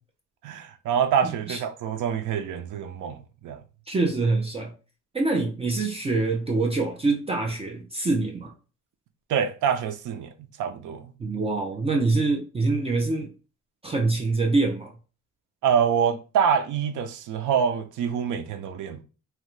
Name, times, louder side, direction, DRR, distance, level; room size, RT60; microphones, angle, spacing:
voice 1, 0.4-3.2 3.4-3.6 9.3-10.3 10.6-11.1 15.6-19.0, right 7 dB, 75° right, 0.6 m, -25 dB
voice 2, 1.2-1.6 3.9-4.7 5.1-8.5 11.2-13.3 13.8-14.9, right 3 dB, 20° right, 0.4 m, -25 dB
2.9 x 2.2 x 3.1 m
cardioid pair, 145°, 30 cm